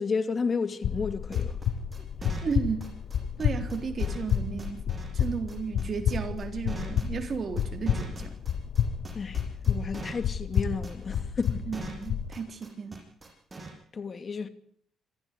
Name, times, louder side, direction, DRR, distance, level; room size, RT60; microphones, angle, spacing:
voice 1, 0.0-1.6 9.1-9.4 9.7-11.7 13.9-14.5, left 5 dB, 40° left, 2.6 m, -32 dB
sound 1, 0.8-12.3, left 8 dB, 70° left, 1.6 m, -30 dB
sound 2, 1.3-13.7, right 3 dB, 25° right, 7.7 m, -42 dB
voice 2, 2.2-2.9 3.4-8.4 11.7-13.0, right 5 dB, 45° right, 3.7 m, -34 dB
26.5 x 15.0 x 9.8 m
cardioid pair, 90°, 0 cm